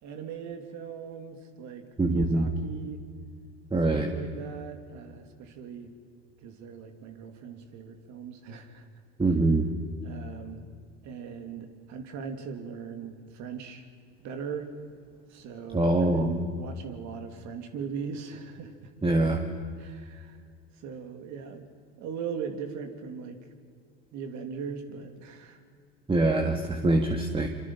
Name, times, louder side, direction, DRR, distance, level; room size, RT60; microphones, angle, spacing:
voice 1, 0.0-3.0 3.9-5.9 6.4-8.9 10.0-10.6 11.0-13.9 14.2-14.7 15.3-18.9 19.8-20.4 20.8-21.7 22.0-23.4 24.1-25.6, right 6 dB, 60° right, 5 dB, 3.0 m, -39 dB
voice 2, 2.0-2.5 3.7-4.1 9.2-9.7 15.7-16.3 19.0-19.5 26.1-27.5, right 2 dB, 15° right, 4 dB, 1.9 m, -24 dB
26.0 x 25.5 x 5.7 m, 2.2 s
hypercardioid pair, 85°, 32 cm